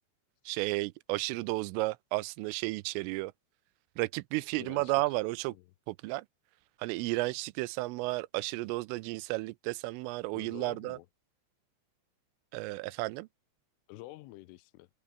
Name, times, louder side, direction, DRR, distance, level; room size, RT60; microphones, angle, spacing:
voice 1, 0.5-3.3 4.0-5.6 5.9-6.3 6.8-11.0 12.5-13.3, right 22 dB, 85° right, 3.2 m, -33 dB
voice 2, 4.6-5.2 5.5-5.6 10.3-11.1 13.9-14.9, left 19 dB, 80° left, 3.3 m, -49 dB
omnidirectional pair, 5.9 m